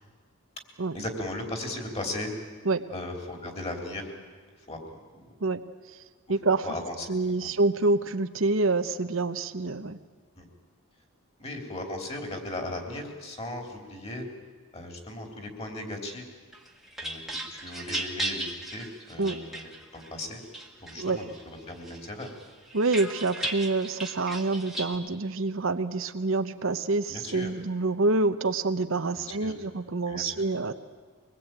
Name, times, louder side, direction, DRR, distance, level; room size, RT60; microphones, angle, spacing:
voice 1, 0.9-2.3 2.9-4.1 4.7-4.8 5.2-5.3 6.6-7.1 7.4-7.5 10.4-10.5 11.4-14.3 14.7-16.3 17.0-17.2 17.5-20.4 20.8-22.3 27.1-27.5 29.4-29.5 30.1-30.3, left 1 dB, 30° left, 3 dB, 3.2 m, -37 dB
voice 2, 6.3-6.7 7.1-10.0 19.2-19.4 21.0-21.2 22.7-30.7, right 3 dB, 65° right, 10 dB, 0.9 m, -27 dB
sound 1, 16.5-20.1 20.5-21.4 21.8-24.9, right 1 dB, ahead, 1.6 m, -36 dB
24.0 x 20.0 x 8.9 m, 1.5 s
head